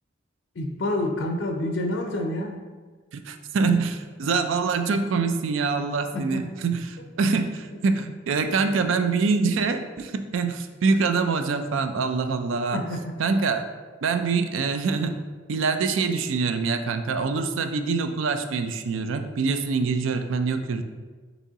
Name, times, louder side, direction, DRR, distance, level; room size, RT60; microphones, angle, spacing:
voice 1, 0.5-2.6 6.1-6.5 12.7-13.1, left 1 dB, 60° left, 3 dB, 0.5 m, -28 dB
voice 2, 3.1-12.8 13.2-13.6 14.0-15.1 15.5-20.8, right 4 dB, 70° right, 8 dB, 0.4 m, -25 dB
6.0 x 3.0 x 2.8 m, 1.4 s
head